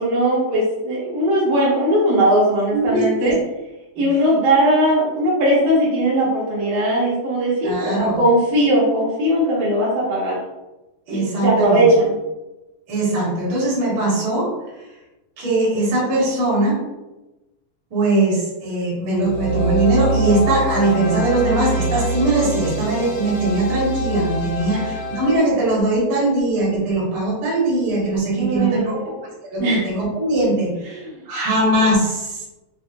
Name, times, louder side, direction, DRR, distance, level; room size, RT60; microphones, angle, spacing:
voice 1, 0.0-3.4 4.0-10.4 11.1-12.2 24.7-24.9 28.3-29.1 29.6-29.9 30.9-31.2, right 1 dB, 75° right, -6 dB, 2.3 m, -19 dB
voice 2, 2.7-3.3 7.6-8.2 11.1-11.8 12.9-14.5 15.4-16.8 17.9-28.9 29.4-31.0 31.3-32.4, right 2 dB, 50° right, -7 dB, 1.7 m, -20 dB
sound 1, 19.2-25.4, right 2 dB, 75° left, 1.7 m, -24 dB
6.1 x 2.0 x 2.6 m, 1.0 s
omnidirectional pair, 4.0 m